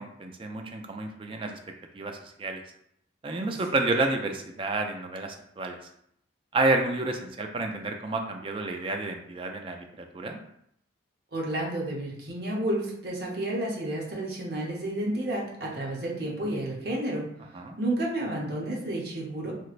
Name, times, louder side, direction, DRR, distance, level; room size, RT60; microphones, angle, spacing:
voice 1, 0.0-1.6 1.9-2.6 3.2-5.8 6.5-10.4 17.5-17.8, right 2 dB, 30° right, 4 dB, 0.3 m, -30 dB
voice 2, 11.3-17.2 17.8-19.5, right 1 dB, 55° right, -3 dB, 0.9 m, -31 dB
3.1 x 3.0 x 2.4 m, 0.73 s
head